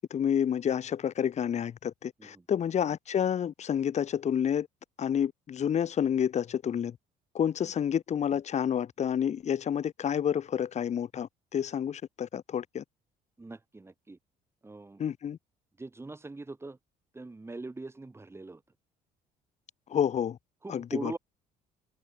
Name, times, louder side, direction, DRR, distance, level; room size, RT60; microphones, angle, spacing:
voice 1, 0.1-4.7 5.0-7.0 7.3-12.8 15.0-15.4 19.9-20.4 20.7-21.1, left 8 dB, 40° left, 1.2 m, -29 dB
voice 2, 13.4-14.2 14.6-15.0 15.8-16.8 17.1-18.6 20.6-21.2, right 3 dB, 15° right, 4.1 m, -41 dB
open air
cardioid pair, 110°, 17 cm